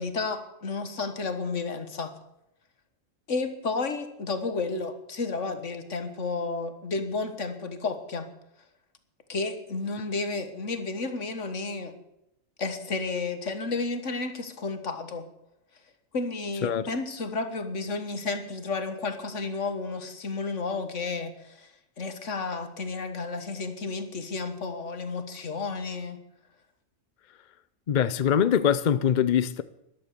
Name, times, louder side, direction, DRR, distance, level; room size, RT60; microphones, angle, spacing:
voice 1, 0.0-2.1 3.3-8.3 9.3-12.0 12.6-15.2 16.1-21.7 22.0-26.2, left 3 dB, 70° left, 1.8 m, -32 dB
voice 2, 27.9-29.6, left 8 dB, 50° left, 0.6 m, -23 dB
13.0 x 11.5 x 6.8 m
omnidirectional pair, 1.3 m